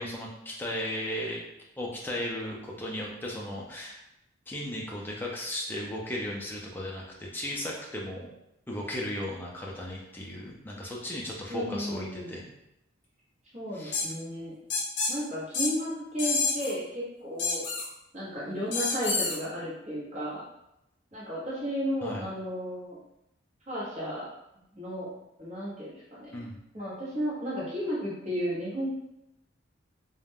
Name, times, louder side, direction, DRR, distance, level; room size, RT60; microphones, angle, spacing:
voice 1, 0.0-1.4 1.8-4.0 4.5-8.3 8.7-12.5 13.7-14.0 22.0-22.3 26.3-26.6, left 1 dB, 10° left, -3 dB, 0.3 m, -36 dB
voice 2, 11.5-12.3 13.5-14.5 15.1-17.6 18.1-20.4 21.1-23.0 23.7-24.3 24.8-25.1 25.4-26.4 26.7-28.9, equal, 35° right, -8 dB, 1.0 m, -33 dB
sound 1, 13.9-14.1 14.7-15.1 15.5-15.7 16.2-16.7 17.4-17.9 18.7-19.4, left 4 dB, 60° left, 0.6 m, -28 dB
2.4 x 2.1 x 3.4 m, 0.86 s
head